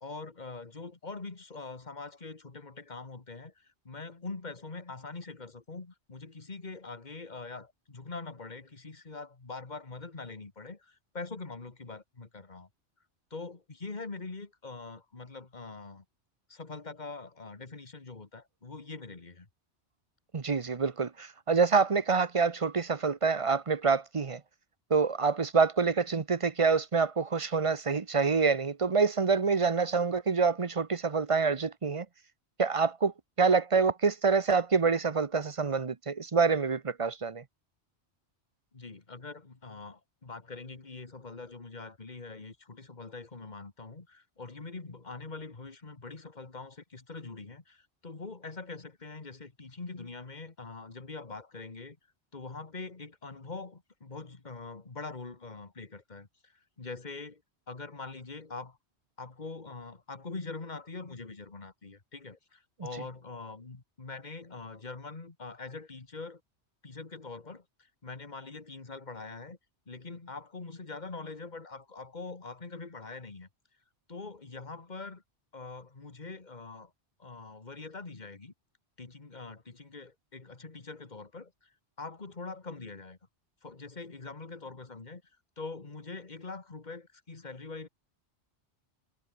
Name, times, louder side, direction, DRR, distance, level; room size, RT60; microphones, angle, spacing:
voice 1, 0.0-12.7 13.3-16.0 16.5-19.5 38.7-52.0 52.3-57.4 57.7-58.8 59.2-66.4 66.8-69.6 69.9-73.5 74.1-75.2 75.5-76.9 77.2-78.5 79.0-83.2 83.6-85.2 85.6-87.9, left 3 dB, 40° left, 2.0 m, -43 dB
voice 2, 20.3-24.4 24.9-32.1 32.6-33.1 33.4-37.4, right 5 dB, 30° right, 0.8 m, -26 dB
omnidirectional pair, 1.2 m